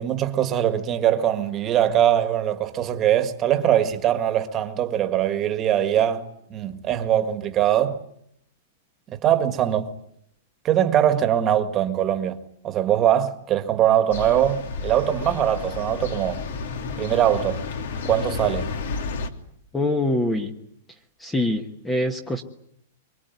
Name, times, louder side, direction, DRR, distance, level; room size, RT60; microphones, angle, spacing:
voice 1, 0.0-8.0 9.1-9.9 10.6-16.4 17.0-17.6 18.1-18.7, right 11 dB, 20° right, 1.8 m, -22 dB
sound 1, 14.1-19.3, left 4 dB, 65° left, 2.8 m, -31 dB
voice 2, 19.7-20.5 21.2-22.4, left 1 dB, 5° left, 1.3 m, -24 dB
25.0 x 23.5 x 9.5 m
supercardioid pair, 170°, 0 cm